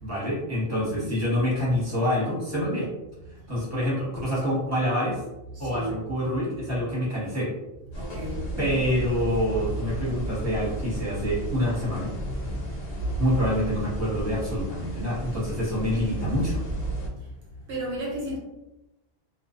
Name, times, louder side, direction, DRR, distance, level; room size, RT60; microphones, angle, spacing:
voice 1, 0.0-2.9 3.5-5.2 5.6-7.5 8.6-12.1 13.2-16.6, equal, 15° right, -8 dB, 1.1 m, -26 dB
voice 2, 0.7-1.1 3.5-3.6 5.5-5.9 7.9-8.4 12.5-12.6 17.7-18.4, right 1 dB, 80° right, -4 dB, 1.1 m, -34 dB
sound 1, 7.9-17.1, right 1 dB, 75° left, 1.0 m, -32 dB
2.5 x 2.2 x 2.5 m, 0.97 s
omnidirectional pair, 1.1 m